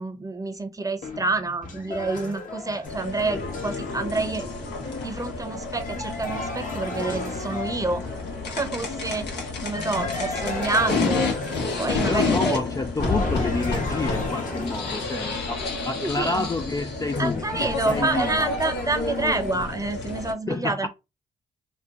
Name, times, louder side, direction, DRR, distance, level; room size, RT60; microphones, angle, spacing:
voice 1, 0.0-8.0 8.5-9.4 9.6-11.3 11.8-12.6 16.0-16.5 17.2-20.9, right 3 dB, 20° right, 0.8 m, -28 dB
sound 1, 1.0-8.4 9.7-12.6 13.0-19.5, left 3 dB, 50° left, 1.1 m, -34 dB
sound 2, 2.9-20.3, left 3 dB, 75° left, 1.1 m, -30 dB
voice 2, 12.1-18.6 20.5-20.9, left 3 dB, 20° left, 0.4 m, -29 dB
2.9 x 2.2 x 3.6 m
supercardioid pair, 55°, 18 cm